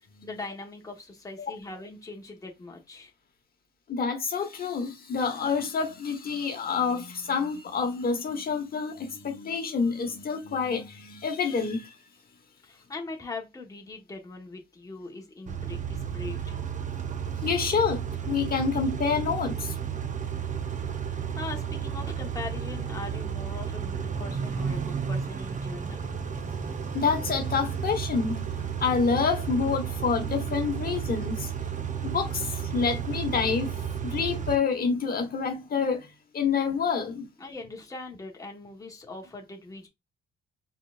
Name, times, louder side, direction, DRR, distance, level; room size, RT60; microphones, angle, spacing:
voice 1, 0.2-3.1 12.6-16.6 21.0-26.0 37.4-39.9, left 3 dB, 15° left, 1.2 m, -41 dB
voice 2, 3.9-11.9 17.4-19.8 26.4-28.5 28.8-31.5 32.0-33.7 34.0-37.3, left 5 dB, 50° left, 1.1 m, -28 dB
Car / Idling / Accelerating revving vroom, 15.5-34.6, right 7 dB, 40° right, 0.7 m, -32 dB
4.3 x 3.7 x 2.4 m
cardioid pair, 90°, 20 cm